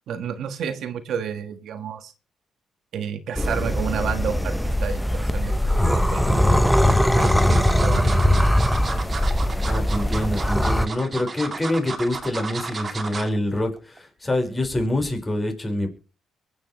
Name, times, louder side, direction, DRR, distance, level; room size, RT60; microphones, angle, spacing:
voice 1, 0.1-2.1 2.9-5.5 5.9-8.9 9.2-9.3, right 8 dB, 70° right, 9 dB, 1.5 m, -31 dB
sound 1, 3.4-10.9, left 1 dB, 5° left, 1.0 m, -20 dB
sound 2, 5.4-6.0 6.7-13.4 13.8-14.0 14.3-14.4, right 4 dB, 35° right, 2.3 m, -33 dB
voice 2, 9.6-15.9, left 1 dB, 20° left, 4 dB, 4.8 m, -26 dB
23.0 x 8.8 x 3.1 m, 0.34 s
cardioid pair, 90°, 0 cm